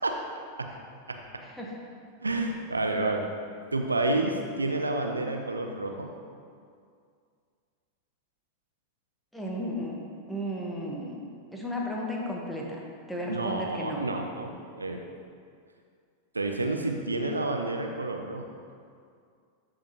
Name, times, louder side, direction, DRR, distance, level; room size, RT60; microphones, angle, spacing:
voice 1, 2.2-3.2 3.7-6.1 13.3-15.0 16.3-18.5, right 2 dB, 80° right, 3 dB, 0.6 m, -29 dB
voice 2, 9.3-10.0 10.3-11.2 11.5-12.8 13.1-14.0, equal, 5° left, -3 dB, 1.3 m, -34 dB
13.0 x 5.0 x 2.9 m, 2.2 s
figure-of-eight pair, 90°, 0 cm